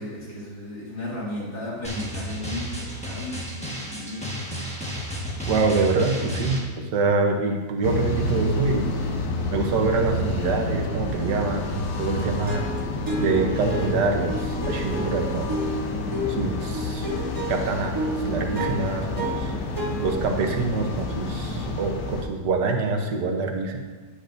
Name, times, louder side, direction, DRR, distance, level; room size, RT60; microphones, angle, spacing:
voice 1, 0.0-4.3, left 1 dB, 65° left, -6 dB, 2.8 m, -34 dB
Drum, 1.8-6.6, equal, 5° left, 1.2 m, -32 dB
voice 2, 5.5-8.9 9.5-12.7 13.2-15.6 16.3-17.1 17.5-19.5 20.0-23.8, right 3 dB, 85° right, 3 dB, 1.5 m, -25 dB
sound 1, 7.8-22.2, left 2 dB, 85° left, 1.5 m, -29 dB
sound 2, 12.5-20.6, equal, 15° right, 0.8 m, -31 dB
10.0 x 8.0 x 2.6 m, 1.4 s
omnidirectional pair, 1.8 m